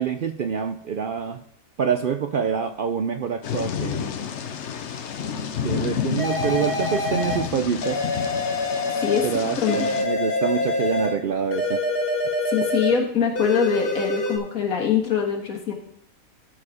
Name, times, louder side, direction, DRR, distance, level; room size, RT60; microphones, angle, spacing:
voice 1, 0.0-1.4 1.8-4.1 5.6-8.0 9.2-11.8, right 7 dB, 65° right, 8 dB, 0.5 m, -26 dB
Thunder / Rain, 3.4-10.0, left 7 dB, 60° left, 1.0 m, -30 dB
sound 1, 6.2-7.5 7.8-9.3 9.7-11.2 11.5-13.0 13.4-14.4, left 2 dB, 40° left, 1.9 m, -25 dB
voice 2, 9.6-9.9 12.5-15.7, left 7 dB, 90° left, 2 dB, 1.9 m, -23 dB
13.0 x 4.8 x 4.9 m, 0.72 s
omnidirectional pair, 1.4 m